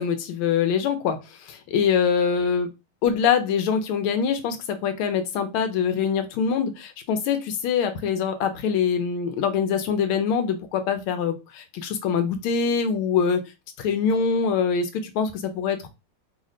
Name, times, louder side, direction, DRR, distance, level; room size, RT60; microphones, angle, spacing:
voice 1, 0.0-2.7 3.0-13.4 13.8-15.9, left 6 dB, 80° left, 8 dB, 1.5 m, -24 dB
3.7 x 2.1 x 3.7 m, 0.25 s
omnidirectional pair, 2.4 m